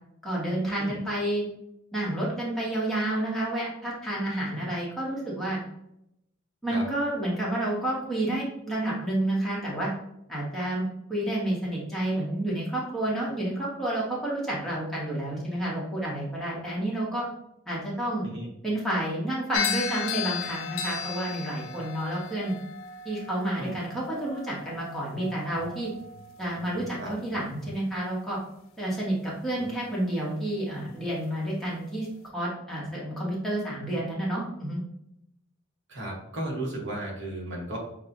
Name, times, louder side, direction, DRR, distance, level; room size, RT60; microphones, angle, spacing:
voice 1, 0.2-1.5 1.9-5.6 6.6-9.9 10.3-17.3 17.7-18.3 18.6-22.5 23.0-25.9 26.4-28.4 28.8-32.1 32.3-34.8, right 1 dB, ahead, -7 dB, 1.2 m, -30 dB
sound 1, 19.5-27.9, left 6 dB, 80° left, 0.5 m, -36 dB
voice 2, 35.9-37.8, right 1 dB, 60° right, -1 dB, 1.1 m, -34 dB
6.5 x 2.4 x 2.6 m, 0.80 s
head